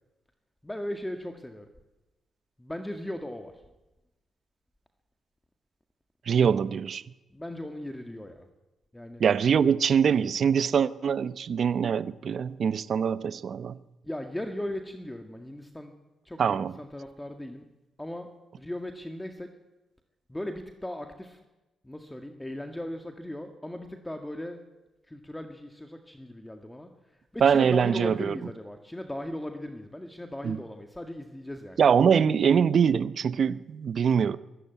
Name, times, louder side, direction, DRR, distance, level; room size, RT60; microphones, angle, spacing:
voice 1, 0.6-1.7 2.6-3.6 7.3-8.5 8.9-9.2 14.0-15.9 16.2-17.6 18.0-18.3 18.6-19.5 20.3-21.4 21.8-24.6 25.1-31.8, left 1 dB, 10° left, 2.0 m, -37 dB
voice 2, 6.3-7.0 9.2-13.8 16.4-16.7 27.4-28.4 30.4-30.6 31.8-34.4, right 7 dB, 60° right, 0.8 m, -23 dB
23.0 x 13.0 x 9.4 m
supercardioid pair, 65°, 0 cm